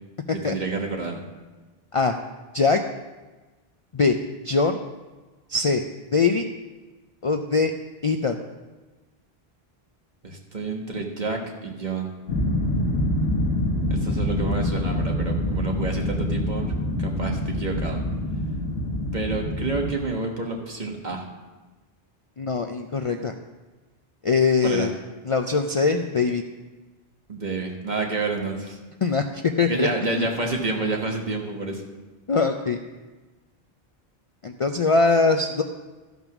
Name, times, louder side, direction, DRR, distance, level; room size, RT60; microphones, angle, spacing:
voice 1, 0.3-1.2 10.2-12.1 13.9-16.7 17.0-18.0 19.1-21.2 24.6-24.9 27.3-28.8 29.7-31.8, right 3 dB, 45° right, 1 dB, 1.5 m, -29 dB
voice 2, 4.4-4.8 5.5-5.8 6.1-6.4 7.2-7.7 8.0-8.4 22.4-23.3 24.2-24.9 25.2-26.4 29.0-30.3 32.3-32.8 34.4-35.6, left 4 dB, 45° left, 5 dB, 0.4 m, -22 dB
sound 1, 12.3-19.9, left 1 dB, 90° left, 1.4 m, -26 dB
13.5 x 5.4 x 6.0 m, 1.2 s
omnidirectional pair, 1.0 m